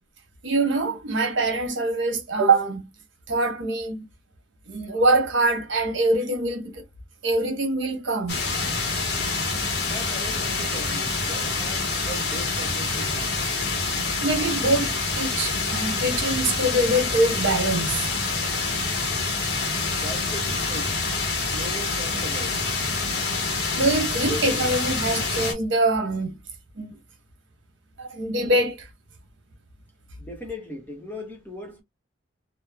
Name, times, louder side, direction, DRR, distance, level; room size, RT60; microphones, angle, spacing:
voice 1, 0.4-2.8 3.3-4.0 4.7-6.8 7.2-8.4 14.2-18.0 23.7-26.3 26.8-27.0 28.0-28.9, right 2 dB, 75° right, 1.1 m, -24 dB
sound 1, 8.3-25.5, left 3 dB, 55° left, 0.9 m, -26 dB
voice 2, 9.8-13.4 20.0-21.0 21.5-22.7 30.2-31.8, equal, 10° left, 0.7 m, -39 dB
3.0 x 2.1 x 2.2 m
head